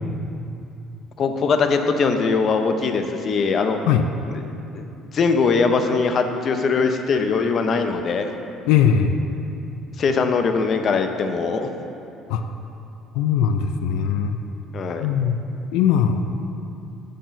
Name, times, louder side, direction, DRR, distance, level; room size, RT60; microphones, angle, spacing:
voice 1, 1.2-3.8 4.3-4.4 4.7-4.8 5.1-8.3 10.0-11.7 14.7-15.1, left 4 dB, 40° left, 6 dB, 0.6 m, -21 dB
voice 2, 8.7-9.2 12.3-12.4 13.1-14.4 15.0-15.4 15.7-16.2, left 8 dB, 85° left, 7 dB, 0.4 m, -19 dB
6.4 x 6.1 x 6.8 m, 2.8 s
cardioid pair, 145°, 0 cm